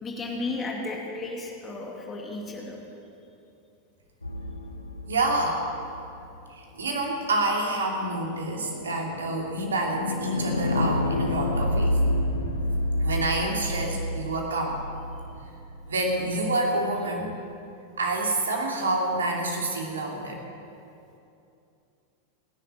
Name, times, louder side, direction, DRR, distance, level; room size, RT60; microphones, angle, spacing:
voice 1, 0.0-2.8, left 2 dB, 20° left, 0 dB, 2.4 m, -34 dB
sound 1, 4.2-6.4 8.2-16.3, left 1 dB, 80° left, 1.1 m, -29 dB
voice 2, 5.1-5.7 6.5-12.0 12.3-12.6 13.0-14.8 15.9-17.3 18.0-20.4, right 2 dB, 70° right, 1 dB, 2.7 m, -28 dB
26.5 x 11.0 x 4.4 m, 2.7 s
figure-of-eight pair, 90°, 0 cm